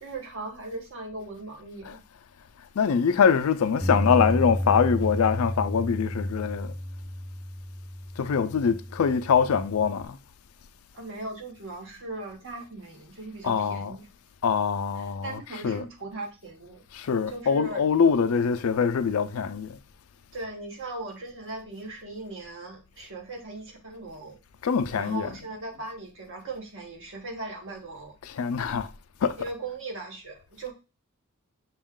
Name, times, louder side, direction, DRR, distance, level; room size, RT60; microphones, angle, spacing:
voice 1, 0.0-2.0 10.9-14.1 15.0-16.8 17.3-17.8 20.3-24.4 24.9-28.1 29.4-30.7, right 2 dB, 60° right, 1.2 m, -38 dB
voice 2, 2.8-6.7 8.2-10.2 13.4-14.0 14.4-15.9 16.9-19.8 24.6-25.3 28.2-28.9 29.2-29.5, left 6 dB, 75° left, 0.4 m, -24 dB
Bass guitar, 3.8-10.1, equal, ahead, 0.4 m, -32 dB
6.1 x 2.4 x 3.6 m
head